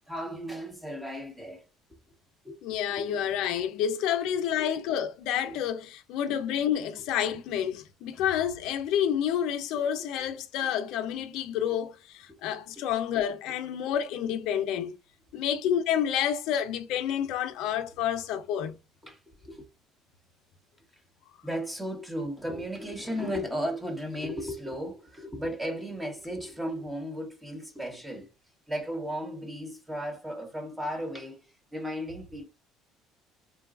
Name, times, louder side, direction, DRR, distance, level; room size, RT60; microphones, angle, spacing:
voice 1, 0.1-1.6 2.4-3.2 4.1-4.7 5.4-5.5 9.7-10.0 19.0-19.7 21.4-28.3 28.7-32.5, equal, 10° right, 0.9 m, -35 dB
voice 2, 2.6-14.9 15.3-18.8, left 9 dB, 70° left, 0.5 m, -29 dB
3.9 x 2.3 x 2.4 m
cardioid pair, 120°, 0 cm